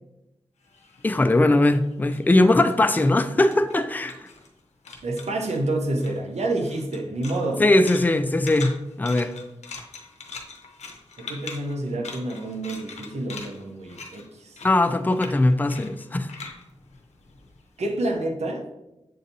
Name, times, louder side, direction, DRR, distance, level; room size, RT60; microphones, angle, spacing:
sound 1, 0.6-4.6 4.8-5.6 5.9-17.8, left 4 dB, 85° left, 0.6 m, -42 dB
voice 1, 1.0-4.3 7.6-9.3 14.6-16.3, left 2 dB, 15° left, 0.4 m, -20 dB
voice 2, 5.0-7.6 11.2-14.6 17.8-18.6, right 2 dB, 75° right, 0.6 m, -28 dB
7.2 x 2.6 x 2.7 m
cardioid pair, 40°, 11 cm